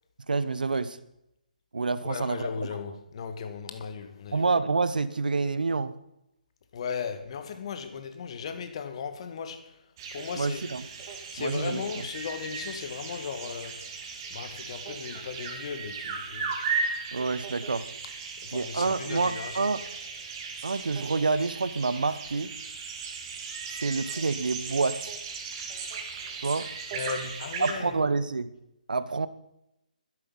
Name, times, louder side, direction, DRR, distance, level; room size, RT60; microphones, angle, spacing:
voice 1, 0.3-1.0 1.7-2.5 4.3-5.9 10.3-10.9 11.4-12.1 17.1-17.9 18.5-19.8 20.6-22.5 23.7-25.1 26.4-26.7 27.6-28.5 28.9-29.3, right 4 dB, 70° right, 1.1 m, -28 dB
voice 2, 2.0-4.5 6.7-9.8 10.1-10.6 11.3-13.9 14.3-16.6 18.4-19.7 26.9-28.0, left 6 dB, 40° left, 1.8 m, -36 dB
sound 1, 10.0-27.7, right 5 dB, 30° right, 2.3 m, -37 dB
13.0 x 11.0 x 5.6 m
figure-of-eight pair, 150°, 5 cm